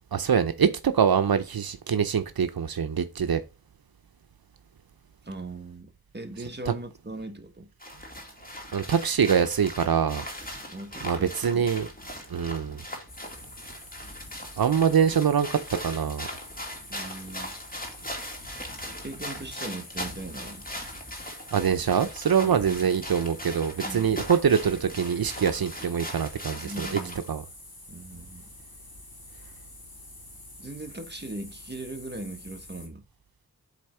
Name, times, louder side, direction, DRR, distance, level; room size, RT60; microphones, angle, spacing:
voice 1, 0.1-3.4 6.7-6.8 8.7-10.2 11.0-11.9 12.3-12.8 14.6-15.6 15.8-16.3 21.5-27.0 27.3-27.4, right 7 dB, 80° right, 0.6 m, -24 dB
voice 2, 5.2-7.7 10.7-11.7 16.9-17.5 19.0-20.7 22.4-22.9 23.8-24.2 26.6-27.2 27.9-28.4 30.6-33.0, right 2 dB, 30° right, 1.3 m, -39 dB
sound 1, 7.8-27.3, left 1 dB, 25° left, 2.2 m, -39 dB
sound 2, 13.1-32.9, left 2 dB, 85° left, 2.6 m, -47 dB
8.3 x 3.5 x 4.3 m
wide cardioid pair, 50°, 36 cm